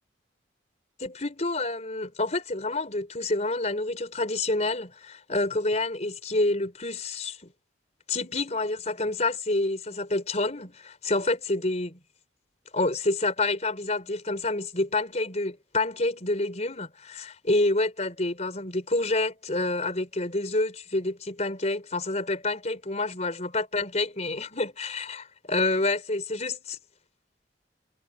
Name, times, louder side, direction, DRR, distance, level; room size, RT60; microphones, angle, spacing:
voice 1, 1.0-7.5 8.1-12.0 12.7-26.8, left 2 dB, 35° left, 4.6 m, -28 dB
head